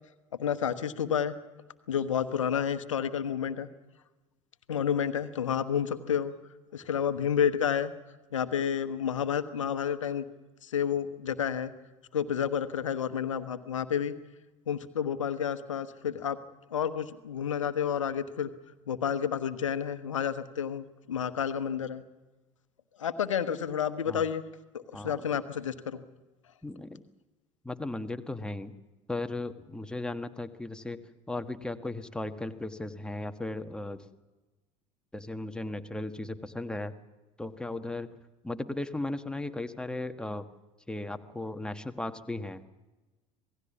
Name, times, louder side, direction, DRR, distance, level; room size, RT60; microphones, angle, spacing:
voice 1, 0.4-1.3 1.9-3.7 4.7-6.3 6.7-7.9 8.3-10.2 10.6-11.7 12.1-14.1 14.7-16.4 16.7-18.5 18.9-22.0 23.0-24.4 24.7-26.0, left 8 dB, 75° left, 12 dB, 1.2 m, -30 dB
voice 2, 26.6-27.0 27.6-28.7 29.1-31.0 31.3-34.1 35.1-36.9 37.4-38.1 38.4-40.5 40.9-42.6, left 2 dB, 5° left, 8 dB, 1.4 m, -36 dB
27.0 x 18.0 x 7.3 m, 1.2 s
figure-of-eight pair, 65°, 16 cm